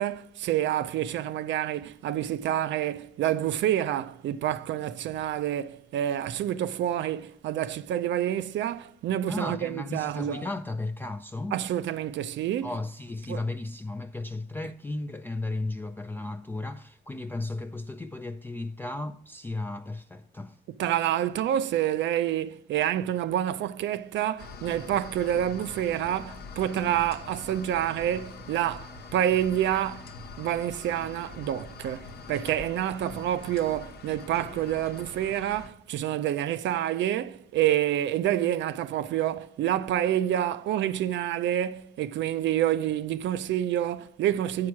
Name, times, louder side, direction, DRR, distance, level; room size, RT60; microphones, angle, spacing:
voice 1, 0.0-10.5 11.5-12.7 13.3-13.4 20.8-30.1 30.4-44.7, right 11 dB, 90° right, 0.5 m, -28 dB
voice 2, 9.3-11.6 12.6-20.6, left 2 dB, 10° left, 0.3 m, -35 dB
sound 1, 24.4-35.7, left 4 dB, 60° left, 0.9 m, -44 dB
9.5 x 4.8 x 5.9 m
cardioid pair, 135°, 18 cm